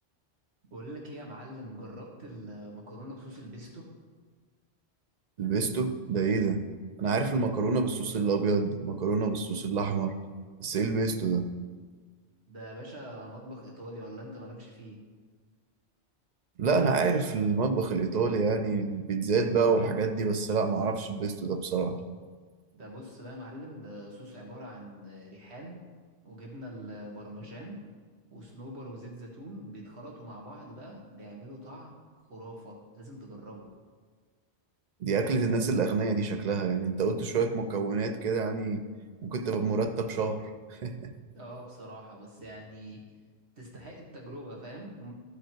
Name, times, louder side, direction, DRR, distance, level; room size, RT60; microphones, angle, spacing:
voice 1, 0.7-3.9 12.5-15.0 22.7-25.8 26.2-27.8 28.3-32.0 32.3-33.7 41.3-43.0 43.6-45.1, equal, 70° right, -2 dB, 1.9 m, -44 dB
voice 2, 5.4-6.7 7.0-10.2 10.6-11.5 16.6-22.0 35.0-38.8 39.2-41.1, right 4 dB, 45° right, 8 dB, 0.6 m, -28 dB
14.0 x 5.0 x 4.5 m, 1.5 s
omnidirectional pair, 1.1 m